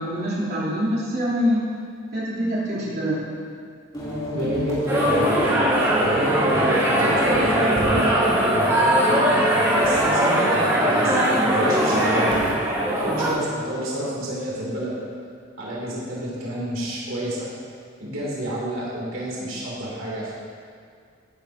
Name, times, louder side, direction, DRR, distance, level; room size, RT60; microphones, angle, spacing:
voice 1, 0.0-1.6 2.1-3.2, equal, 50° right, -9 dB, 3.3 m, -24 dB
sound 1, 3.9-9.3, left 1 dB, 20° left, 3.4 m, -34 dB
voice 2, 4.3-5.0 6.0-8.7 9.0-9.3 9.7-12.5 12.9-15.0 15.6-17.5 18.0-20.3, right 1 dB, 80° right, -6 dB, 3.0 m, -29 dB
sound 2, 4.9-13.3, right 1 dB, 15° right, 3.3 m, -20 dB
17.0 x 10.5 x 2.9 m, 2.2 s
head